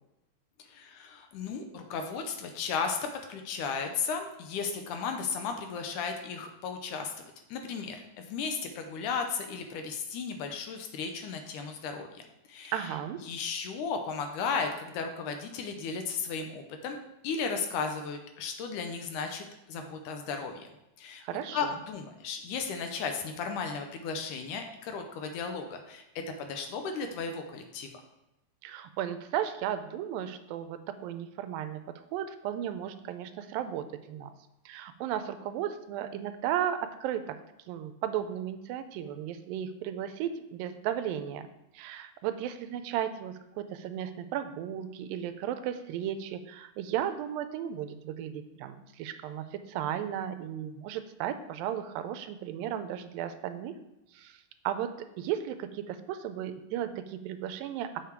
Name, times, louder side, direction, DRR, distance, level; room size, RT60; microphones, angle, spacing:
voice 1, 0.7-12.9 13.2-17.0 17.2-20.7 21.0-21.2 21.5-26.0 26.4-27.9, left 5 dB, 75° left, 5 dB, 2.1 m, -35 dB
voice 2, 12.7-13.2 21.2-21.7 28.6-31.8 32.1-34.3 34.7-37.4 37.7-41.5 41.7-53.7 54.1-58.0, right 10 dB, 90° right, 10 dB, 2.4 m, -35 dB
7.0 x 6.7 x 4.5 m, 0.90 s
omnidirectional pair, 4.0 m